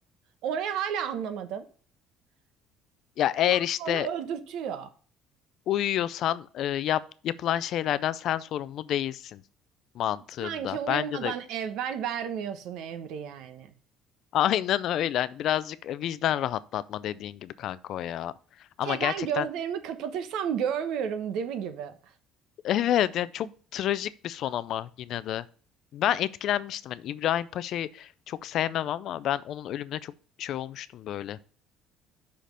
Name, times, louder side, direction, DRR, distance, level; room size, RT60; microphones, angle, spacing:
voice 1, 0.4-1.6 3.4-4.9 10.4-13.7 18.8-22.0, right 8 dB, 60° right, 1.0 m, -32 dB
voice 2, 3.2-4.1 5.7-9.4 9.9-11.3 14.3-18.3 18.8-19.5 22.6-25.5 25.9-30.1 30.4-31.4, left 11 dB, 45° left, 0.4 m, -29 dB
5.8 x 5.2 x 6.5 m
cardioid pair, 175°, 0 cm